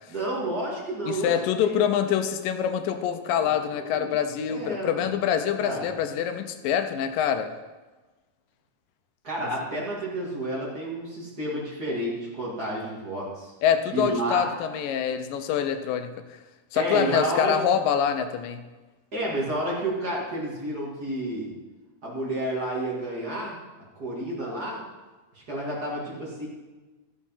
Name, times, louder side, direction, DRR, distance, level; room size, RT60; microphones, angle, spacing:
voice 1, 0.1-1.3 1.6-1.8 3.4-3.7 4.0-4.2 4.5-5.1 5.6-5.9 9.2-13.5 13.9-14.5 16.7-17.5 19.1-21.5 22.0-23.6 24.0-24.8 25.3-26.5, right 1 dB, 30° right, -5 dB, 2.6 m, -30 dB
voice 2, 1.1-7.5 13.6-16.4 16.7-18.6, left 8 dB, 85° left, 8 dB, 2.5 m, -25 dB
13.5 x 7.2 x 5.7 m, 1.2 s
omnidirectional pair, 3.8 m